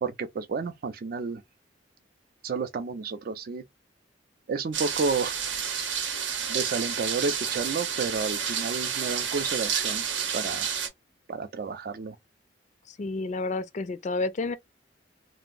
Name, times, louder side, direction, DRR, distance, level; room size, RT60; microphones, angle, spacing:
voice 1, 0.0-1.4 2.4-3.6 4.5-5.4 6.5-10.1 10.3-10.7 11.3-12.2, right 4 dB, 50° right, 0.4 m, -31 dB
sound 1, 4.7-10.9, right 7 dB, 75° right, 0.8 m, -30 dB
voice 2, 12.9-14.6, left 3 dB, 40° left, 0.3 m, -30 dB
2.5 x 2.0 x 3.6 m
head